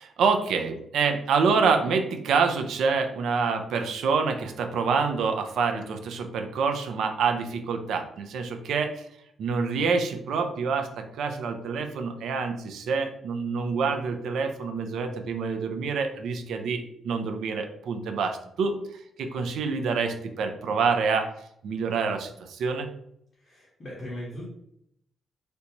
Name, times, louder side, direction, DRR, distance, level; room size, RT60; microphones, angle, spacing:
voice 1, 0.0-9.1 9.4-21.3 21.6-22.9, right 5 dB, 75° right, 5 dB, 0.5 m, -27 dB
voice 2, 23.4-24.5, equal, 30° left, -7 dB, 0.9 m, -38 dB
3.3 x 2.6 x 2.9 m, 0.72 s
cardioid pair, 155°, 0 cm